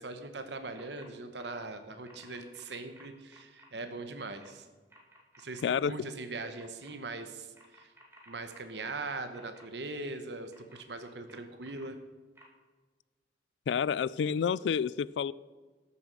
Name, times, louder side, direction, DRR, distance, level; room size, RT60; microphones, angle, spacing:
voice 1, 0.0-4.7 5.4-7.9 8.3-12.0, right 3 dB, 70° right, 8 dB, 1.0 m, -41 dB
sound 1, 0.7-1.1 1.3-1.6 2.0-3.7 4.2-4.5 4.9-5.6 6.5-6.9 7.5-9.6 10.5-11.8 12.4-12.5, right 1 dB, 15° right, 2.3 m, -57 dB
voice 2, 5.6-5.9 13.7-15.3, left 7 dB, 75° left, 20 dB, 0.3 m, -29 dB
13.5 x 7.2 x 6.2 m, 1.3 s
head